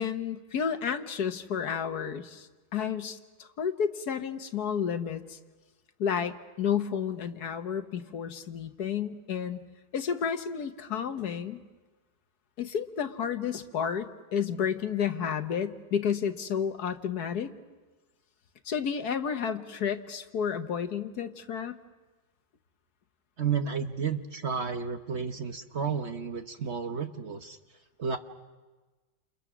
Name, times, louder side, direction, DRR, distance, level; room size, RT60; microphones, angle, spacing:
voice 1, 0.0-5.4 6.0-9.6 9.9-11.6 12.6-17.5 18.6-21.7, left 7 dB, 65° left, 8 dB, 1.6 m, -31 dB
voice 2, 23.4-27.6 28.0-28.2, right 6 dB, 45° right, 7 dB, 1.1 m, -32 dB
29.5 x 29.0 x 6.1 m, 1.2 s
omnidirectional pair, 1.8 m